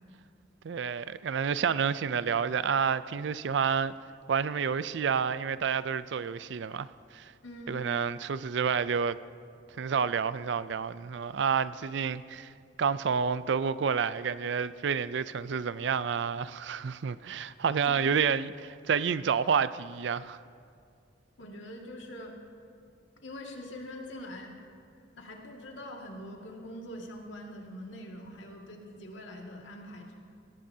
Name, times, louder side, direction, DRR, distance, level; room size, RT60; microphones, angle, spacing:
voice 1, 0.6-3.9 4.3-6.9 7.1-7.3 7.7-9.2 9.8-12.5 12.8-20.4, right 6 dB, 70° right, 0.4 m, -29 dB
voice 2, 7.4-7.9 17.9-18.0 21.4-22.4 23.2-24.5 25.2-30.1, left 1 dB, 80° left, 2.0 m, -43 dB
20.0 x 17.5 x 2.8 m
head